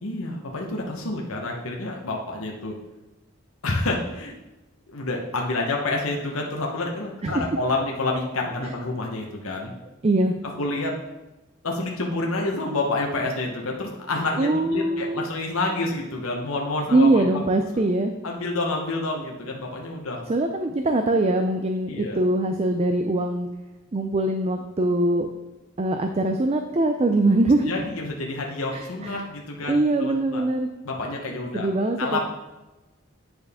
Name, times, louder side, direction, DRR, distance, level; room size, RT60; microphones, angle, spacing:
voice 1, 0.0-2.7 3.6-4.4 4.9-9.7 10.6-10.9 11.6-17.5 18.2-20.2 21.9-22.2 27.6-30.4 30.8-31.7 32.0-32.2, left 2 dB, 75° left, 0 dB, 1.1 m, -28 dB
voice 2, 10.0-10.3 14.4-15.3 16.9-18.1 20.3-23.5 23.9-25.3 25.8-27.7 28.7-29.2 29.7-30.7 31.5-32.2, right 2 dB, 30° right, 6 dB, 0.4 m, -22 dB
8.9 x 6.3 x 3.6 m, 1.1 s
head